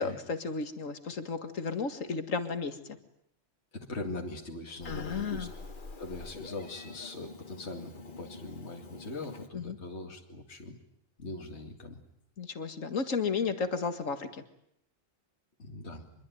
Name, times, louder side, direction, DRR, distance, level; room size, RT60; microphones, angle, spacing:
voice 1, 0.0-3.0 4.9-5.5 9.5-9.8 12.4-14.4, left 5 dB, 85° left, 8 dB, 2.3 m, -33 dB
voice 2, 3.7-5.5 6.0-10.8 11.2-12.0 15.6-16.0, left 2 dB, 60° left, 1 dB, 2.7 m, -41 dB
Meow, 4.8-9.5, left 3 dB, 40° left, 1.8 m, -46 dB
26.0 x 22.0 x 9.4 m, 0.75 s
omnidirectional pair, 1.3 m